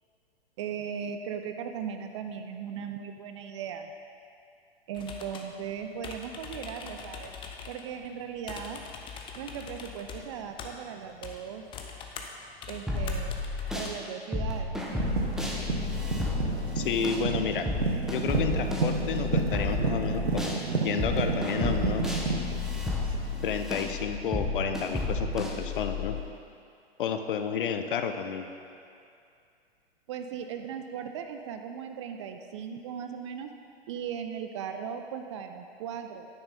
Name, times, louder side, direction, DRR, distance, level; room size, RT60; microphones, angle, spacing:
voice 1, 0.6-3.9 4.9-7.3 7.7-8.8 9.4-11.6 12.7-13.4 13.7-14.8 30.1-33.5 33.9-36.3, right 7 dB, 30° right, 6 dB, 0.4 m, -38 dB
sound 1, 4.9-14.0, left 5 dB, 15° left, 0.6 m, -44 dB
sound 2, 12.9-13.9 14.3-20.6 21.0-26.2, left 2 dB, ahead, 1.0 m, -32 dB
sound 3, 14.9-23.7 24.6-24.7, right 4 dB, 75° right, 1.1 m, -31 dB
voice 2, 16.8-17.7 18.1-22.1 23.4-26.2 27.0-28.5, left 7 dB, 55° left, 7 dB, 0.8 m, -31 dB
9.8 x 8.6 x 4.1 m, 2.4 s
figure-of-eight pair, 110°, 32 cm